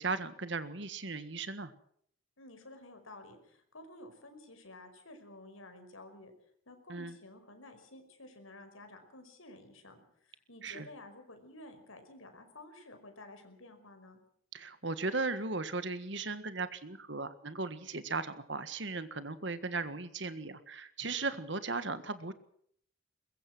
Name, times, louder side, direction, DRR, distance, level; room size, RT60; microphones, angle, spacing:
voice 1, 0.0-1.7 6.9-7.2 10.6-10.9 14.5-22.3, right 3 dB, 60° right, 12 dB, 1.7 m, -37 dB
voice 2, 2.4-6.3 6.7-14.2, left 2 dB, 80° left, 7 dB, 5.2 m, -52 dB
22.0 x 22.0 x 6.2 m, 0.65 s
head